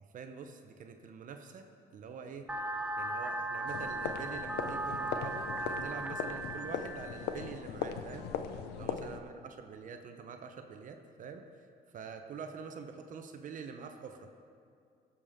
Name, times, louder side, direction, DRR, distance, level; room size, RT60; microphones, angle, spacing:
voice 1, 0.1-1.7 1.9-2.5 3.0-8.3 8.7-11.7 11.9-14.3, right 6 dB, 50° right, 6 dB, 0.8 m, -46 dB
sound 1, 2.5-7.5, right 2 dB, 10° right, 0.5 m, -37 dB
sound 2, 3.7-9.2, left 8 dB, 80° left, 0.6 m, -39 dB
17.0 x 7.0 x 3.6 m, 2.3 s
cardioid pair, 110°, 17 cm